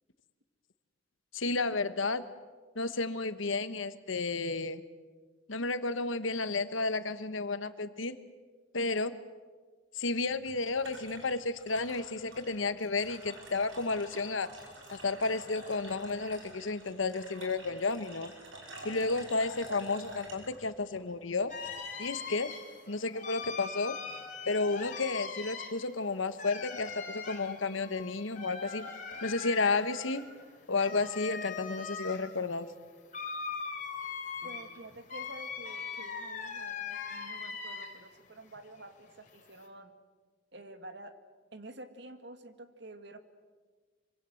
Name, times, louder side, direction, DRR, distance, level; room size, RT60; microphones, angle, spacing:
voice 1, 1.3-2.2 2.7-4.8 5.5-8.2 8.7-9.2 9.9-14.5 14.9-18.3 18.8-21.5 22.0-22.5 22.9-24.0 24.5-28.9 29.2-30.3 30.7-32.7, left 3 dB, 85° left, 12 dB, 1.3 m, -32 dB
sound 1, 10.2-21.9, right 1 dB, 80° right, 6.1 m, -49 dB
sound 2, 15.8-16.1 17.6-17.9 19.1-19.3 21.0-21.2 22.2-22.5 23.4-23.7 24.8-25.1 26.9-27.2 29.1-29.3 31.6-31.8 32.3-32.5, left 1 dB, 25° left, 7.5 m, -59 dB
sound 3, 21.5-38.2 38.5-39.7, left 5 dB, 40° left, 3.6 m, -41 dB
voice 2, 34.4-39.9 40.5-41.2 41.5-43.2, right 2 dB, 60° right, 8 dB, 1.9 m, -49 dB
25.5 x 24.5 x 7.9 m, 1.5 s
head